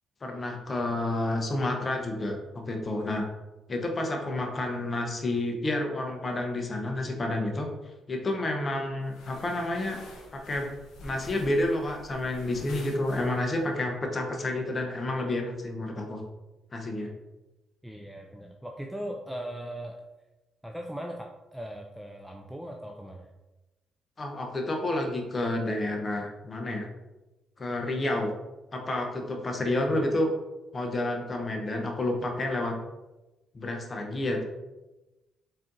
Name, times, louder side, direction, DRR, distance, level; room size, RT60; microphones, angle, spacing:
voice 1, 0.2-3.2 3.7-7.7 8.1-10.0 10.3-10.7 11.0-16.2 16.7-17.1 24.2-26.9 27.6-28.3 28.7-30.3 30.7-32.7 33.5-34.4, left 1 dB, 35° left, 2 dB, 0.7 m, -30 dB
sound 1, 9.0-13.7, left 1 dB, 85° left, 0.8 m, -48 dB
voice 2, 17.8-20.0 20.6-23.3 29.7-30.1, right 1 dB, ahead, 1 dB, 0.4 m, -39 dB
4.2 x 3.7 x 2.6 m, 1.1 s
cardioid pair, 90°, 0 cm